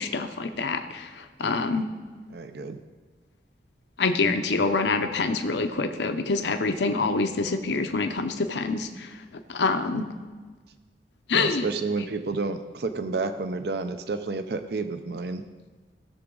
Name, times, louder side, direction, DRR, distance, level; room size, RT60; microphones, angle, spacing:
voice 1, 0.0-1.9 4.0-9.1 9.5-10.1 11.3-11.7, left 3 dB, 85° left, 7 dB, 0.7 m, -26 dB
voice 2, 2.3-2.8 9.9-10.0 11.3-15.4, right 3 dB, 65° right, 9 dB, 0.5 m, -30 dB
17.0 x 6.9 x 3.8 m, 1.4 s
head